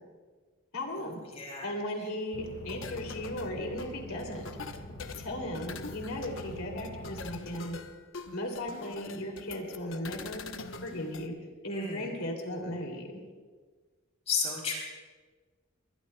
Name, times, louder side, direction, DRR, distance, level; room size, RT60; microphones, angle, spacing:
voice 1, 0.7-1.2 1.6-4.5 5.2-7.8 8.3-10.5 10.8-11.3 11.6-13.1, left 1 dB, 90° left, 1 dB, 2.8 m, -36 dB
voice 2, 1.3-1.7 11.7-12.1 14.3-14.7, left 5 dB, 30° left, -2 dB, 3.4 m, -33 dB
sound 1, 2.3-7.3, left 1 dB, 50° left, 1.8 m, -45 dB
sound 2, 2.7-11.3, left 4 dB, 65° left, 0.9 m, -44 dB
22.0 x 21.5 x 2.2 m, 1.4 s
head